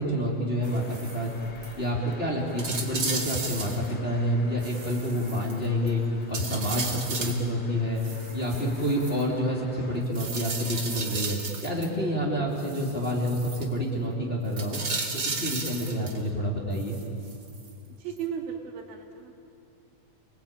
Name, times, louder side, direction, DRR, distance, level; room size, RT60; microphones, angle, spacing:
voice 1, 0.0-1.3 1.8-6.0 6.3-8.0 8.3-14.8 15.2-17.0, equal, 15° left, -2 dB, 2.6 m, -28 dB
sound 1, 0.6-10.0, left 1 dB, 55° left, 3.7 m, -47 dB
sound 2, 0.6-1.3 1.6-1.8 2.1-2.2 2.6-3.9 4.6-5.9 6.3-7.5 8.0-9.2 10.1-11.9 12.6-13.7 14.5-16.2 16.7-17.7 18.2-18.3, right 4 dB, 35° right, 2.0 m, -34 dB
voice 2, 18.0-19.3, right 7 dB, 75° right, 3 dB, 4.0 m, -35 dB
29.5 x 20.0 x 8.9 m, 2.6 s
omnidirectional pair, 4.3 m